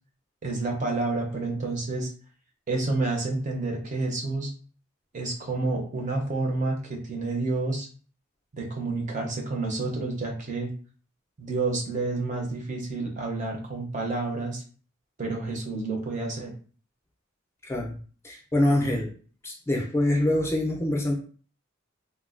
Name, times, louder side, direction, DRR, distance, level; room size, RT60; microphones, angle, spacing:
voice 1, 0.4-2.1 2.7-4.5 5.1-7.9 8.5-10.7 11.4-14.6 15.2-16.5, right 3 dB, 35° right, 1 dB, 0.5 m, -29 dB
voice 2, 17.6-18.0 18.2-19.1 19.4-21.1, left 1 dB, 15° left, -2 dB, 0.4 m, -25 dB
3.1 x 2.2 x 2.4 m, 0.41 s
head